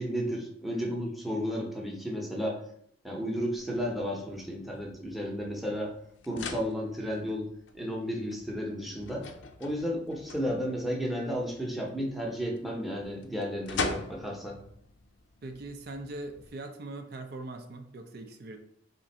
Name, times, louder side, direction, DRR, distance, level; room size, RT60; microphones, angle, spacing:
voice 1, 0.0-2.6 3.0-5.9 6.3-7.5 7.7-9.2 9.6-14.6, equal, ahead, -1 dB, 0.8 m, -33 dB
sound 1, 3.6-16.5, left 4 dB, 85° left, 0.5 m, -43 dB
voice 2, 15.4-18.6, right 2 dB, 60° right, 5 dB, 0.5 m, -41 dB
3.6 x 2.5 x 4.2 m, 0.66 s
head